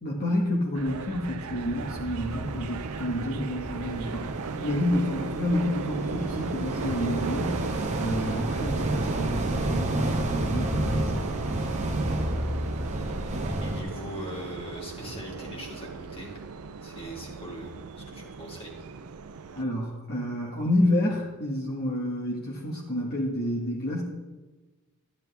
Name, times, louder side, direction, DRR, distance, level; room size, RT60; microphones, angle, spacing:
voice 1, 0.0-4.2 4.6-11.3 19.5-24.0, left 1 dB, 45° left, -3 dB, 1.6 m, -29 dB
sound 1, 0.7-19.6, right 5 dB, 80° right, 0.6 m, -36 dB
sound 2, 1.6-13.8, right 1 dB, 30° right, 1.2 m, -31 dB
voice 2, 13.6-16.4 16.8-18.7, equal, 25° left, -1 dB, 2.4 m, -40 dB
13.0 x 10.5 x 3.5 m, 1.2 s
head